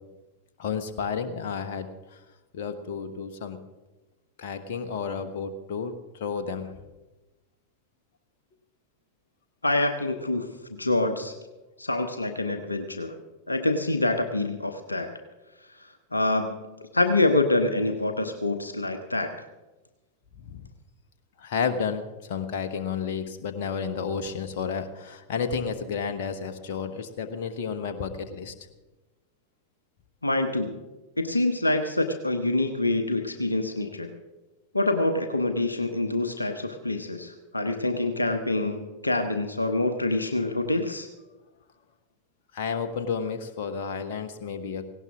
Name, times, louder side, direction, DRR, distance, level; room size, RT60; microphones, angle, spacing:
voice 1, 0.6-2.2 2.5-3.6 4.4-6.7 20.4-20.7 21.4-28.5 42.5-44.9, left 6 dB, 50° left, 7 dB, 1.2 m, -31 dB
voice 2, 9.6-10.4 10.8-11.3 11.8-13.2 13.5-15.1 16.1-16.7 16.9-19.3 30.2-30.8 31.2-34.1 34.7-41.1, left 2 dB, 80° left, 7 dB, 1.0 m, -26 dB
18.0 x 17.0 x 3.6 m, 1.1 s
figure-of-eight pair, 90°, 0 cm